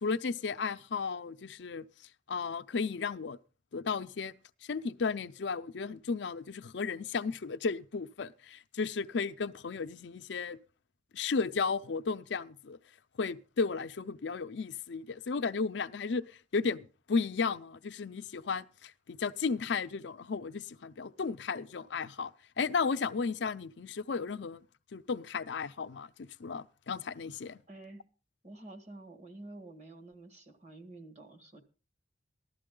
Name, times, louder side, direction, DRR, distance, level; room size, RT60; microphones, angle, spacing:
voice 1, 0.0-1.8 2.3-3.4 3.7-4.3 4.7-10.6 11.1-12.8 13.2-16.2 16.5-22.3 22.6-24.6 24.9-27.6, left 5 dB, 75° left, 0.5 m, -34 dB
voice 2, 27.7-28.0 28.4-31.6, right 2 dB, 40° right, 1.9 m, -49 dB
15.0 x 12.0 x 3.8 m
head